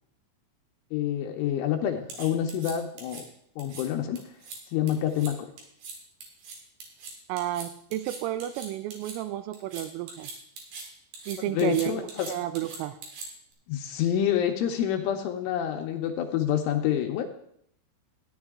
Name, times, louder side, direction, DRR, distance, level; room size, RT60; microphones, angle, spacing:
voice 1, 0.9-3.2 3.6-4.2 4.7-5.5 11.5-12.3 13.7-17.3, left 10 dB, 80° left, 3 dB, 3.1 m, -27 dB
sound 1, 2.1-3.2 3.6-3.8 4.2-4.6 4.9-5.3 5.6-6.0 6.2-9.2 9.5-10.9 11.1-13.5, right 4 dB, 60° right, 3.7 m, -42 dB
voice 2, 7.3-10.3 11.3-13.0, right 14 dB, 85° right, 12 dB, 3.2 m, -31 dB
13.5 x 9.8 x 3.6 m, 0.69 s
omnidirectional pair, 5.9 m